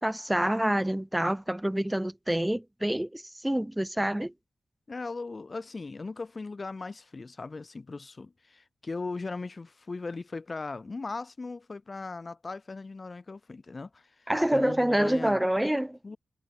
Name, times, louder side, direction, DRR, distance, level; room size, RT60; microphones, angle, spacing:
voice 1, 0.0-4.3 14.3-16.0, right 1 dB, 10° right, 4.9 m, -27 dB
voice 2, 4.9-15.4 16.0-16.2, left 3 dB, 45° left, 4.7 m, -38 dB
supercardioid pair, 45°, 0 cm